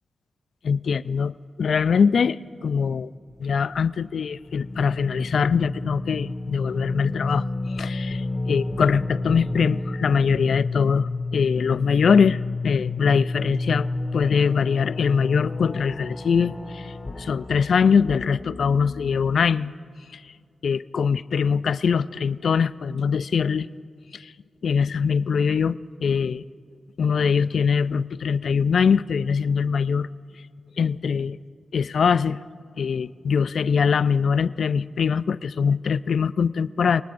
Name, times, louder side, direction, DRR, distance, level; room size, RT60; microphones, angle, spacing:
voice 1, 0.6-3.1 3.4-13.9 14.1-19.7 20.1-20.3 20.6-23.7 24.1-24.3 24.6-26.4 27.0-30.1 30.8-31.4 31.7-32.4 32.8-37.0, left 6 dB, 70° left, 17 dB, 0.3 m, -22 dB
sound 1, 3.3-3.8 4.5-19.4, left 2 dB, 30° left, 1.5 m, -31 dB
26.0 x 19.0 x 2.6 m, 2.2 s
supercardioid pair, 45°, 0 cm